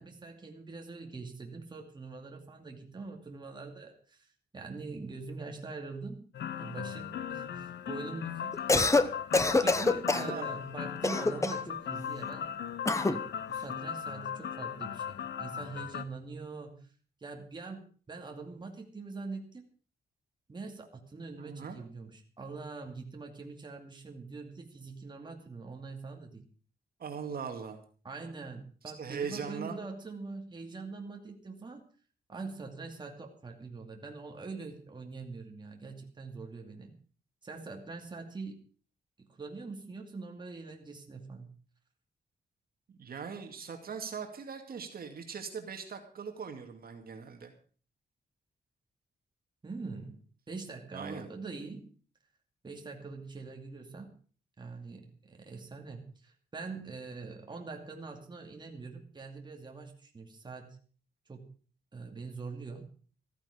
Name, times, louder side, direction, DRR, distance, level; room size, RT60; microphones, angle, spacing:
voice 1, 0.0-6.3 6.6-8.8 9.6-12.5 12.9-16.8 17.2-17.8 18.1-19.6 20.5-26.4 28.0-31.8 32.3-36.9 37.4-38.6 39.2-41.5 49.6-50.2 50.5-51.9 52.6-54.1 54.6-60.8 61.3-61.5 61.9-62.8, right 4 dB, 25° right, 1 dB, 2.5 m, -43 dB
sound 1, 6.3-16.1, left 9 dB, 85° left, 0.8 m, -38 dB
Cough, 8.5-9.1 9.3-10.3 11.0-11.7 12.8-13.2, left 3 dB, 15° left, 0.8 m, -25 dB
voice 2, 10.1-10.5 21.4-21.8 27.0-27.8 29.0-29.8 42.9-47.5 50.9-51.3, right 6 dB, 60° right, 4 dB, 2.2 m, -40 dB
14.5 x 14.0 x 5.1 m, 0.41 s
wide cardioid pair, 160°, 17 cm